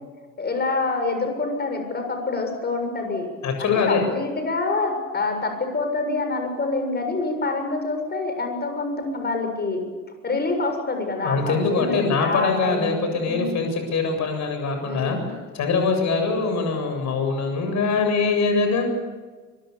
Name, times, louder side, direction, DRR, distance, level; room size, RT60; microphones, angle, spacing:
voice 1, 0.4-3.3 3.6-9.8 10.2-13.6 14.8-15.3, left 3 dB, 25° left, 5 dB, 7.3 m, -26 dB
voice 2, 3.4-4.0 11.2-15.2 15.5-18.8, left 4 dB, 40° left, 5 dB, 7.9 m, -23 dB
25.0 x 24.0 x 7.0 m, 1.4 s
figure-of-eight pair, 70°, 41 cm